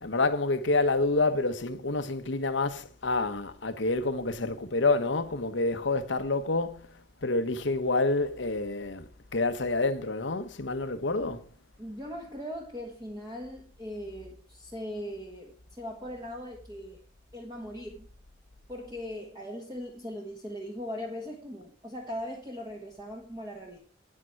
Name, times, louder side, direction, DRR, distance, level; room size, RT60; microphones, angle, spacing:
voice 1, 0.0-11.4, left 3 dB, 75° left, 1.1 m, -28 dB
voice 2, 11.8-17.0 17.3-18.1 18.7-23.8, equal, 20° right, 1.6 m, -39 dB
9.7 x 8.9 x 4.6 m
head